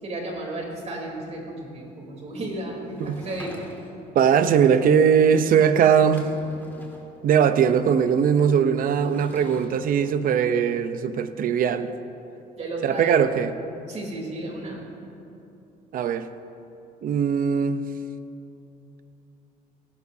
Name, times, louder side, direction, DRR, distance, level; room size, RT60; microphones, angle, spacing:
voice 1, 0.0-3.7 12.6-13.6 13.9-14.8, right 1 dB, 40° right, -1 dB, 3.5 m, -33 dB
Sliding door / Wood, 2.9-4.1 5.6-5.7 5.9-7.1 8.8-9.8, left 1 dB, 10° left, 2.2 m, -45 dB
voice 2, 4.1-6.3 7.2-11.9 12.8-13.5 15.9-16.3 17.0-17.9, right 7 dB, 55° right, 11 dB, 0.7 m, -20 dB
17.5 x 15.5 x 2.8 m, 2.7 s
cardioid pair, 110°, 17 cm